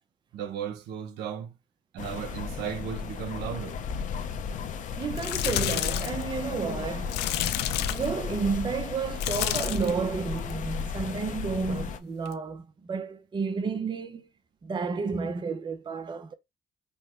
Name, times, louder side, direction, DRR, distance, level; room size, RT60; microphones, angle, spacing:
voice 1, 0.3-1.5 1.9-3.8, right 8 dB, 80° right, 1.0 m, -35 dB
sound 1, 2.0-12.0, left 6 dB, 50° left, 0.7 m, -34 dB
sound 2, 5.0-6.2 7.1-8.2 9.1-10.0 10.4-10.7 12.3-12.4, left 13 dB, 80° left, 0.5 m, -30 dB
voice 2, 5.0-7.2 7.8-14.3 14.6-16.3, right 5 dB, 25° right, 0.7 m, -31 dB
5.6 x 2.2 x 4.4 m
cardioid pair, 110°, 17 cm